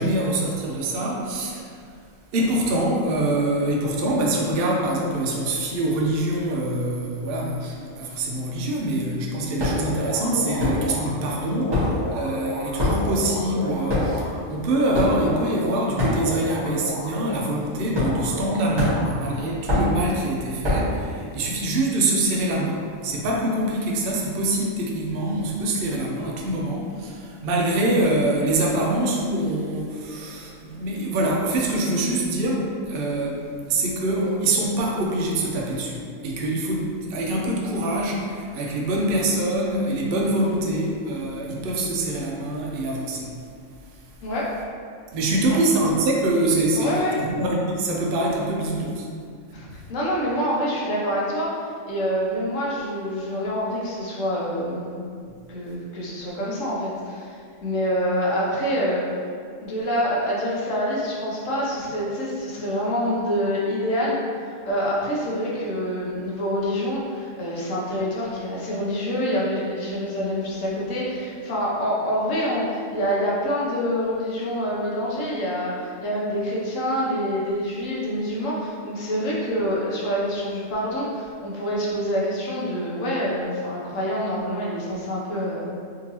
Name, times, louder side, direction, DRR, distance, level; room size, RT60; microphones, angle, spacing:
voice 1, 0.0-1.7 2.3-43.3 45.1-49.1 55.3-55.4, right 1 dB, 60° right, -2 dB, 0.6 m, -25 dB
sound 1, 9.6-10.0 10.6-11.2 11.5-16.6 16.9-17.2 17.9-18.5 18.8-21.0, left 1 dB, 20° right, 1.3 m, -25 dB
sound 2, 9.9-11.1 11.5-14.3 14.7-17.5 17.9-19.5, left 1 dB, 40° left, 0.8 m, -33 dB
voice 2, 44.2-44.5 45.5-45.6 46.7-47.2 49.5-51.6 51.9-55.0 55.5-57.3 57.6-59.0 59.6-85.7, equal, 70° left, -5 dB, 1.1 m, -26 dB
3.7 x 2.8 x 2.8 m, 2.2 s
omnidirectional pair, 1.4 m